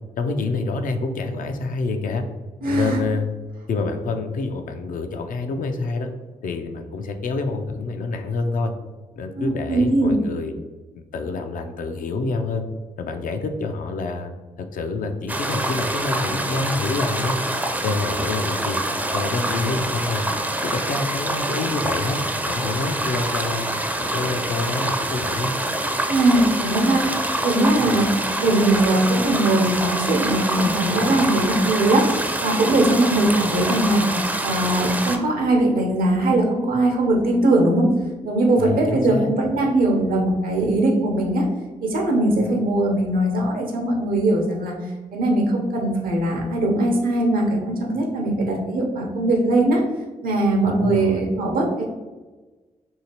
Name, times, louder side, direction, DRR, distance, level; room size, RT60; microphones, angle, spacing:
voice 1, 0.2-2.2 2.6-3.3 3.7-6.1 6.4-8.7 9.2-10.5 10.9-12.6 13.0-14.3 14.6-17.4 17.8-18.8 19.1-20.2 20.6-22.2 22.5-23.7 24.0-25.5 38.6-39.3 50.6-51.2, left 3 dB, 65° left, 6 dB, 0.4 m, -27 dB
voice 2, 2.6-3.0 9.3-10.1 26.1-28.1 28.4-32.2 32.4-34.1 34.4-37.9 38.2-41.5 41.8-44.7 45.1-49.8 50.2-51.9, right 1 dB, 70° right, 1 dB, 0.7 m, -20 dB
sound 1, 15.3-35.2, right 1 dB, 10° right, 0.5 m, -26 dB
2.9 x 2.8 x 2.8 m, 1.3 s
supercardioid pair, 45°, 15 cm